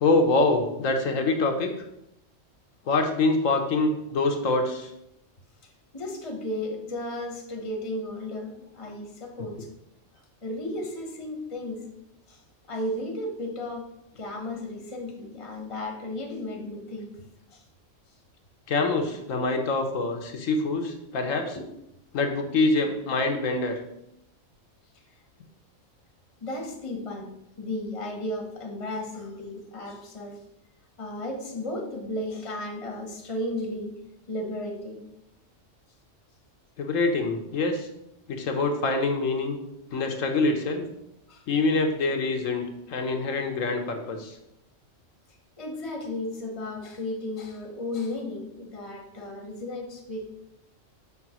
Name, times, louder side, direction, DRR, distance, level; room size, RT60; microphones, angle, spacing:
voice 1, 0.0-1.7 2.8-4.9 18.7-21.6 22.1-23.8 36.8-37.9 38.3-39.6 39.9-40.8 41.5-44.4, left 3 dB, 85° left, 4 dB, 1.3 m, -25 dB
voice 2, 5.9-9.7 10.4-11.8 12.3-12.4 12.7-13.9 14.2-17.1 17.5-17.6 21.5-21.7 26.4-27.3 27.6-30.4 31.0-34.0 34.3-35.0 41.3-41.4 45.6-50.3, left 1 dB, 25° left, 2 dB, 1.0 m, -34 dB
6.0 x 3.6 x 6.0 m, 0.82 s
omnidirectional pair, 1.3 m